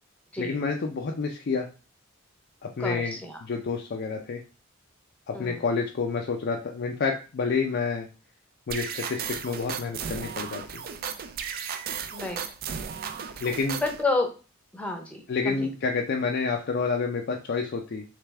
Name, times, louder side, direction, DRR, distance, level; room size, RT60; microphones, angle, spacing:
voice 1, 0.4-1.7 2.6-3.2 3.4-4.4 5.3-8.1 8.7-10.8 13.4-13.8 15.3-18.0, left 4 dB, 50° left, 2 dB, 0.4 m, -29 dB
voice 2, 2.8-3.4 5.3-5.6 12.1-12.4 13.8-14.3 14.7-15.6, left 3 dB, 5° left, 3 dB, 0.7 m, -30 dB
sound 1, 8.7-14.0, right 7 dB, 45° right, 0.4 m, -35 dB
3.4 x 3.2 x 3.3 m, 0.34 s
head